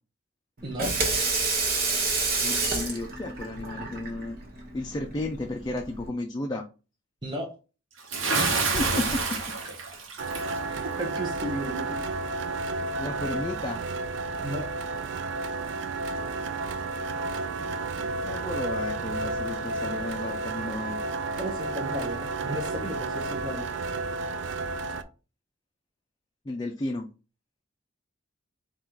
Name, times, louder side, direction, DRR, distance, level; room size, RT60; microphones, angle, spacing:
Water tap faucet / Sink (filling or washing), 0.6-6.1, right 3 dB, 50° right, 1.1 m, -29 dB
voice 1, 2.4-4.4 4.7-6.7 8.3-9.4 10.6-10.9 13.0-13.8 17.6-21.0 26.5-27.1, left 2 dB, 20° left, 2 dB, 0.4 m, -33 dB
Bathtub (filling or washing) / Splash splatter, 8.1-10.6, right 4 dB, 85° right, 0.9 m, -27 dB
sound 1, 10.2-25.0, right 3 dB, 65° right, 0.4 m, -32 dB
voice 2, 11.0-12.0 14.4-14.6 21.4-23.7, equal, 25° right, -1 dB, 0.7 m, -34 dB
3.9 x 2.4 x 4.5 m, 0.33 s
head